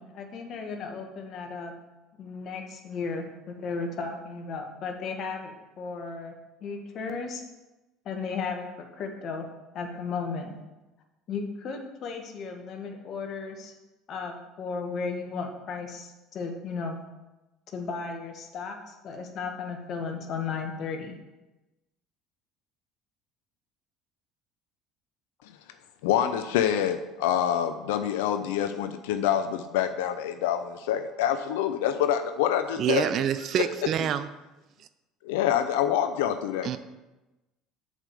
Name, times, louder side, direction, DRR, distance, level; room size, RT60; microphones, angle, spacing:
voice 1, 0.0-1.8 2.2-7.4 8.0-10.6 11.3-13.7 14.1-17.0 17.7-21.2, left 4 dB, 50° left, 4 dB, 1.5 m, -35 dB
voice 2, 26.0-33.1 35.2-36.8, left 10 dB, 75° left, 9 dB, 0.4 m, -26 dB
voice 3, 32.8-34.3 36.6-36.8, right 9 dB, 55° right, 12 dB, 0.6 m, -26 dB
7.2 x 5.0 x 6.8 m, 1.1 s
hypercardioid pair, 70°, 0 cm